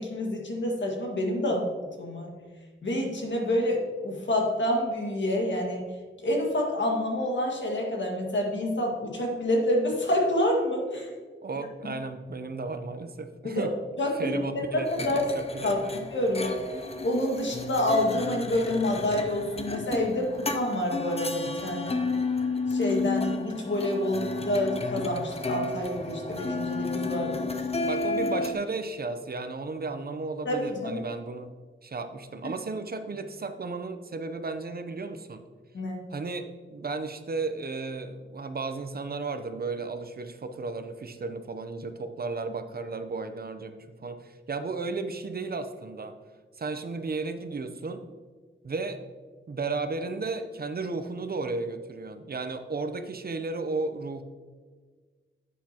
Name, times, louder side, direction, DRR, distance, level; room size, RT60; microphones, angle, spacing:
voice 1, 0.0-1.6 2.0-2.3 2.8-5.9 6.2-11.1 11.8-11.9 13.4-13.7 14.0-14.6 14.9-15.3 15.6-15.8 16.1-16.6 17.0-22.0 22.7-27.4 30.5-31.0 35.7-36.1, left 1 dB, 65° left, 0 dB, 1.8 m, -28 dB
voice 2, 11.4-13.7 14.1-15.9 27.8-31.5 31.8-35.5 36.1-46.2 46.6-48.0 48.6-49.0 49.5-54.2, right 3 dB, 50° right, 8 dB, 0.7 m, -34 dB
sound 1, 14.9-28.5, left 3 dB, 30° left, 0.7 m, -32 dB
10.5 x 8.2 x 2.9 m, 1.5 s
wide cardioid pair, 125°, 20 cm